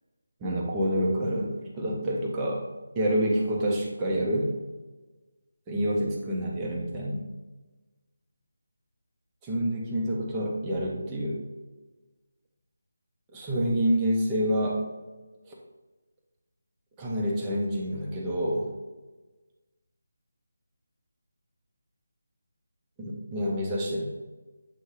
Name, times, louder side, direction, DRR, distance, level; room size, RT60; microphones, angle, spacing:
voice 1, 0.4-2.6 3.0-4.5 5.7-7.3 9.4-11.4 13.3-14.8 15.5-15.6 17.0-18.7 23.0-24.0, equal, 10° right, -3 dB, 0.8 m, -27 dB
7.6 x 2.7 x 4.8 m, 1.2 s
figure-of-eight pair, 170°, 0 cm